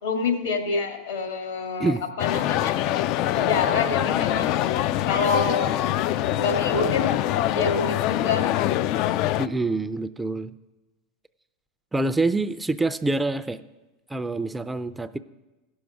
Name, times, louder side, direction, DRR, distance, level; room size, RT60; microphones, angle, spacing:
voice 1, 0.0-2.7 3.3-4.7 5.1-5.7 6.3-7.2 7.5-8.5, left 4 dB, 75° left, 4 dB, 1.9 m, -27 dB
sound 1, 2.2-9.5, left 13 dB, 55° left, 0.4 m, -24 dB
voice 2, 9.4-10.5 11.9-13.6 14.1-15.2, right 2 dB, 10° right, 13 dB, 0.4 m, -26 dB
15.5 x 6.4 x 4.7 m, 1.1 s
hypercardioid pair, 95°, 0 cm